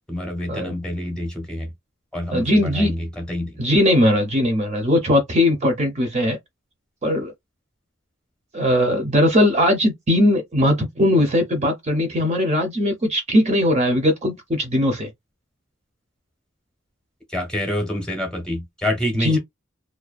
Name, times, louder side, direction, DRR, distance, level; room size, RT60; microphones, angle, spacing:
voice 1, 0.1-1.7 2.1-3.6 17.3-19.4, left 1 dB, 5° left, 0.8 m, -27 dB
voice 2, 2.3-2.9 3.6-6.4 7.0-7.3 8.5-15.1 19.2-19.4, left 1 dB, 30° right, 0.6 m, -19 dB
2.4 x 2.1 x 2.3 m
head